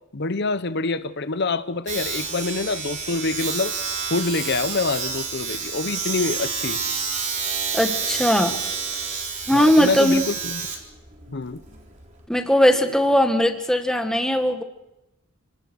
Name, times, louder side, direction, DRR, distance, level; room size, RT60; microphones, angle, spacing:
voice 1, 0.1-3.7 4.1-6.8 9.5-10.6 11.3-11.6, left 3 dB, 50° left, 13 dB, 0.9 m, -26 dB
Domestic sounds home sounds, 1.9-12.2, right 5 dB, 35° right, 4.1 m, -29 dB
voice 2, 7.7-8.6 9.5-10.2 12.3-14.6, equal, 5° left, 6 dB, 1.8 m, -19 dB
29.5 x 19.5 x 6.4 m, 0.89 s
head